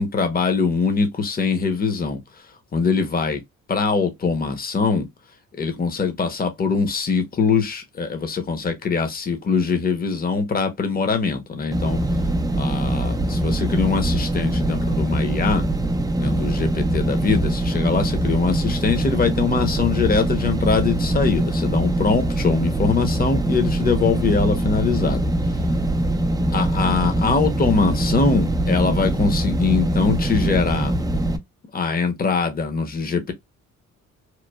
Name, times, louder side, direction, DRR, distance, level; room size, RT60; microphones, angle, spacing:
voice 1, 0.0-2.2 2.7-3.4 3.7-5.1 5.5-12.0 12.6-15.6 16.1-25.3 26.5-31.0 31.7-33.3, left 5 dB, 30° left, 0.8 m, -22 dB
sound 1, 11.7-31.4, right 1 dB, 10° right, 0.4 m, -22 dB
3.1 x 2.1 x 2.2 m
cardioid pair, 90°, 30 cm